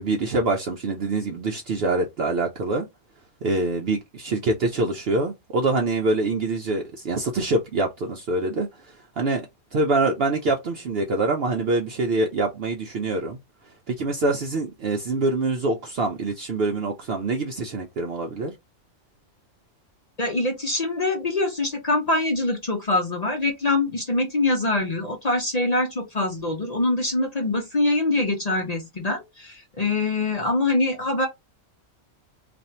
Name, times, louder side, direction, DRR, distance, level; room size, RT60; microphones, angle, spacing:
voice 1, 0.0-2.9 3.4-9.5 9.7-13.4 13.9-18.5, right 2 dB, 60° right, 0.8 m, -25 dB
voice 2, 20.2-31.3, left 2 dB, 40° left, 0.7 m, -24 dB
2.6 x 2.4 x 4.1 m
omnidirectional pair, 1.3 m